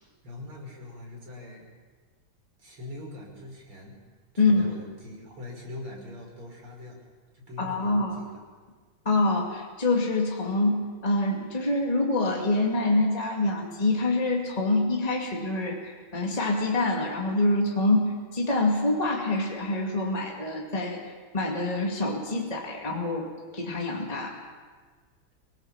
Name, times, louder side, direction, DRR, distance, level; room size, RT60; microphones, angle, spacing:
voice 1, 0.2-1.6 2.6-4.0 4.3-7.0 7.3-8.4, left 2 dB, 90° right, -1 dB, 6.6 m, -42 dB
voice 2, 4.4-4.7 7.6-8.2 9.0-24.4, left 2 dB, 20° left, -1 dB, 2.4 m, -26 dB
26.0 x 18.0 x 7.2 m, 1.5 s
omnidirectional pair, 2.3 m